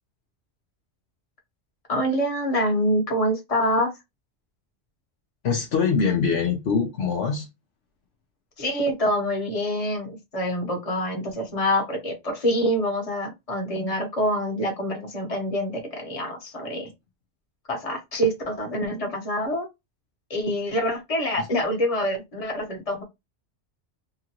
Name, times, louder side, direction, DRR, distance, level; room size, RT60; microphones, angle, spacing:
voice 1, 1.9-3.9 8.6-16.9 17.7-19.7 20.3-23.0, equal, 35° left, 1.0 m, -26 dB
voice 2, 5.4-7.5 21.4-21.5, left 5 dB, 65° left, 0.8 m, -23 dB
2.8 x 2.5 x 2.9 m
omnidirectional pair, 1.2 m